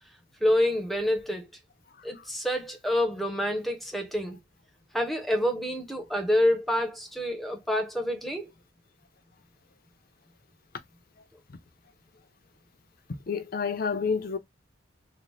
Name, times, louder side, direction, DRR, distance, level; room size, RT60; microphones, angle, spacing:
voice 1, 0.4-1.5 2.0-4.4 4.9-8.5, left 1 dB, ahead, 0.6 m, -27 dB
voice 2, 1.9-2.3 11.2-11.6 13.1-14.4, left 5 dB, 45° left, 0.5 m, -31 dB
3.8 x 2.0 x 3.1 m
head